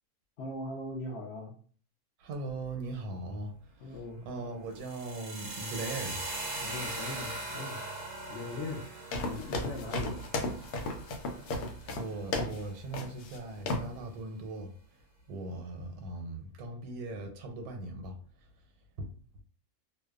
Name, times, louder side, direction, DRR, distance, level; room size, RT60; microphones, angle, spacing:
voice 1, 0.4-1.6 3.8-4.2 6.6-7.8 8.3-8.8 9.2-10.2, left 2 dB, 65° left, 0.6 m, -39 dB
voice 2, 2.2-3.5 3.9-4.0 4.2-6.2 11.9-14.7 15.3-18.2 19.0-19.1, right 2 dB, 80° right, 1.1 m, -39 dB
sound 1, 4.7-12.8, right 2 dB, 40° right, 0.7 m, -41 dB
sound 2, 9.1-12.6 12.9-13.4 13.7-13.9, left 2 dB, 85° left, 1.1 m, -34 dB
2.6 x 2.1 x 2.3 m
omnidirectional pair, 1.6 m